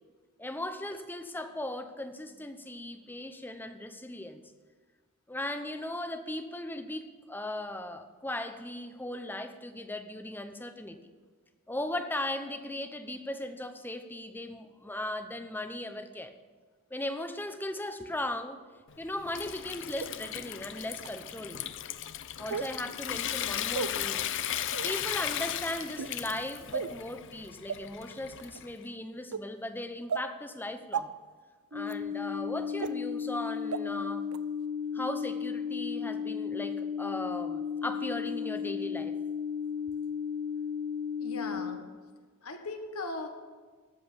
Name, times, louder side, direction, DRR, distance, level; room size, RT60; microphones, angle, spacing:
voice 1, 0.4-4.4 5.3-11.0 11.7-16.3 16.9-18.6 19.0-21.6 22.4-24.3 24.8-31.1 31.7-34.3 34.9-39.2, left 1 dB, 10° left, 8 dB, 0.8 m, -37 dB
Water tap faucet / Sink (filling or washing) / Trickle dribble, 18.9-28.8, left 11 dB, 60° left, 0.6 m, -36 dB
sound 1, 20.0-20.1 21.0-21.1 22.5-22.7 23.7-23.9 24.7-24.9 25.9-26.2 26.7-27.0 27.7-27.8 28.4-28.6 29.3-29.4 30.1-30.2 30.9-31.0 31.9-32.0 32.8-32.9 33.7-33.8 34.3-34.4, right 6 dB, 85° right, 0.6 m, -33 dB
sound 2, 31.7-41.7, left 7 dB, 50° right, 2.7 m, -34 dB
voice 2, 41.2-41.8 42.4-43.3, left 3 dB, 80° left, 5 dB, 1.5 m, -38 dB
13.0 x 7.7 x 6.9 m, 1.5 s
head